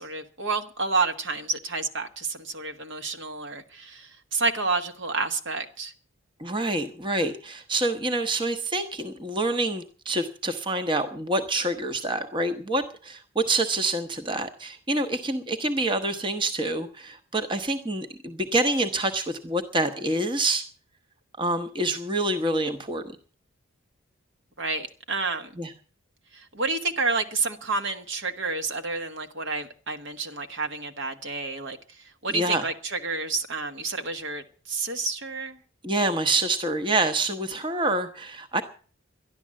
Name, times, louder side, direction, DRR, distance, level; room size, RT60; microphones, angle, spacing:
voice 1, 0.0-5.9 24.6-25.5 26.3-31.8 32.2-35.6, right 3 dB, 60° right, 7 dB, 1.4 m, -29 dB
voice 2, 6.4-20.6 21.4-23.0 25.6-25.7 32.3-32.7 35.8-38.6, right 2 dB, 20° right, 8 dB, 1.0 m, -27 dB
12.5 x 11.5 x 7.5 m, 0.42 s
head